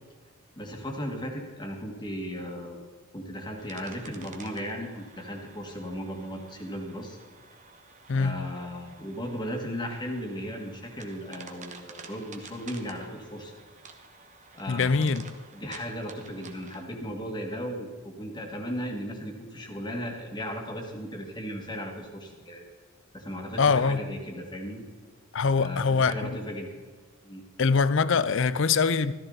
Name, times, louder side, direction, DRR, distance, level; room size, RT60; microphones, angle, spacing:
voice 1, 0.6-2.8 3.1-7.2 8.1-13.6 14.5-15.3 15.5-22.6 23.1-24.8 25.5-26.7 27.2-27.4, equal, 20° left, 2.0 m, -36 dB
sound 1, 3.6-16.8, right 4 dB, 35° right, 1.2 m, -50 dB
voice 2, 8.1-8.5 14.7-15.3 23.6-24.0 25.3-26.4 27.6-29.1, left 5 dB, 60° left, 0.5 m, -23 dB
14.5 x 13.5 x 4.0 m
head